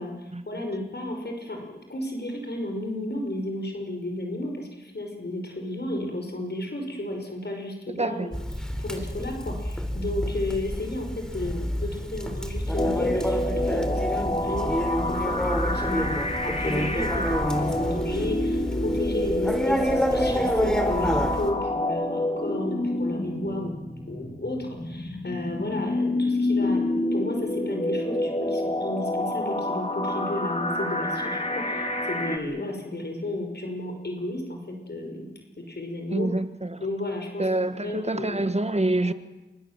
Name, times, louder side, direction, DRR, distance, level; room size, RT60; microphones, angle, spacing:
voice 1, 0.0-8.4 8.8-23.8 24.1-35.3 35.6-36.3 36.8-37.5 37.8-38.5, left 1 dB, 65° left, 5.5 m, -33 dB
voice 2, 7.9-8.3 36.1-36.8 37.4-39.1, right 2 dB, 35° right, 1.6 m, -26 dB
Conversation, 8.3-21.5, equal, 5° left, 3.7 m, -28 dB
sound 1, 12.8-32.4, left 1 dB, 35° left, 3.7 m, -28 dB
28.0 x 24.0 x 7.5 m
wide cardioid pair, 50°, 19 cm